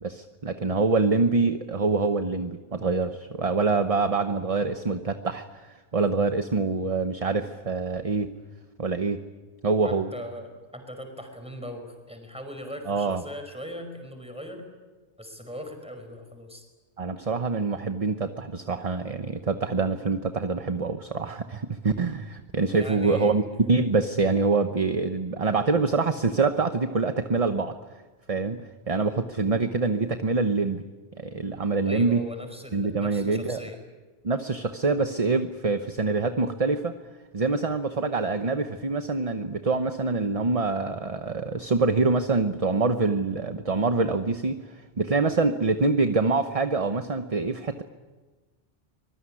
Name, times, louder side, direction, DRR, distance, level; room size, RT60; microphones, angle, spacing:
voice 1, 0.0-8.3 8.8-9.2 9.6-10.1 12.9-13.2 17.0-27.8 28.3-30.8 31.2-32.2 32.7-33.6 34.2-36.9 37.3-47.8, right 4 dB, 35° right, 8 dB, 1.0 m, -25 dB
voice 2, 9.8-14.6 15.2-16.6 22.7-23.4 31.8-33.8, equal, 5° right, 5 dB, 5.3 m, -39 dB
24.5 x 21.0 x 10.0 m, 1.3 s
omnidirectional pair, 1.2 m